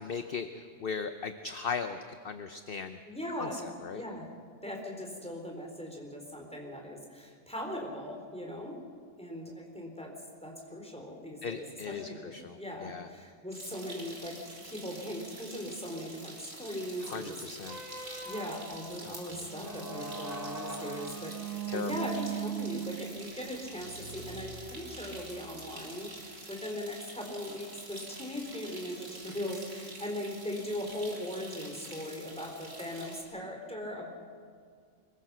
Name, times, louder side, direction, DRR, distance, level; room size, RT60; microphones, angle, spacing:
voice 1, 0.0-3.0 3.4-4.0 11.4-13.1 17.0-17.8 19.0-19.8 21.7-22.1, left 5 dB, 45° left, 8 dB, 0.9 m, -38 dB
voice 2, 3.1-3.6 3.9-4.3 4.6-8.8 9.2-10.1 10.4-14.4 14.6-17.4 18.2-26.1 26.5-34.1, left 1 dB, 5° left, 0 dB, 4.0 m, -39 dB
sound 1, 13.5-33.2, right 2 dB, 70° right, 4.0 m, -47 dB
sound 2, 17.6-25.4, right 7 dB, 55° right, 3.0 m, -40 dB
25.0 x 22.5 x 6.2 m, 2.1 s
omnidirectional pair, 1.5 m